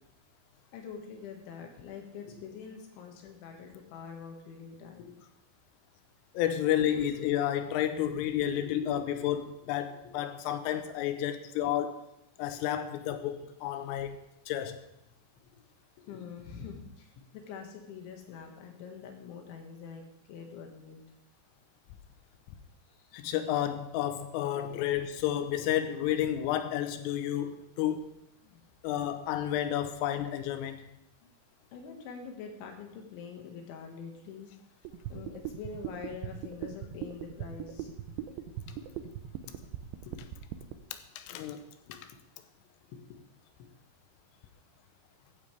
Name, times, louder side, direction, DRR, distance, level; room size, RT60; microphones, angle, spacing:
voice 1, 0.7-5.2 8.4-9.1 9.6-9.9 13.1-13.2 13.8-14.0 15.4-15.6 16.0-21.0 22.9-23.0 24.6-24.8 28.4-28.6 31.2-31.3 31.7-34.5 35.1-37.9 38.7-38.9 40.1-40.2 41.9-42.2 42.8-43.2 43.6-43.7, left 6 dB, 75° left, 4.0 m, -45 dB
voice 2, 6.4-12.0 12.4-14.2 14.5-14.8 23.1-28.1 28.8-30.9 40.9-41.7 41.9-42.0, left 11 dB, 90° left, 3.5 m, -31 dB
sound 1, 34.9-40.7, right 12 dB, 80° right, 2.8 m, -39 dB
15.0 x 11.5 x 3.4 m
omnidirectional pair, 5.7 m